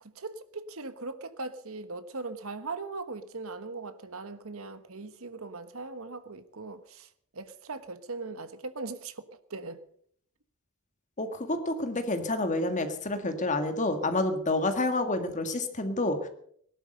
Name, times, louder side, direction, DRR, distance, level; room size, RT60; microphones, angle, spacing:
voice 1, 0.0-9.8, right 3 dB, 65° right, 1.3 m, -40 dB
voice 2, 11.2-16.3, left 2 dB, 35° left, 1.9 m, -29 dB
18.0 x 12.0 x 6.6 m
head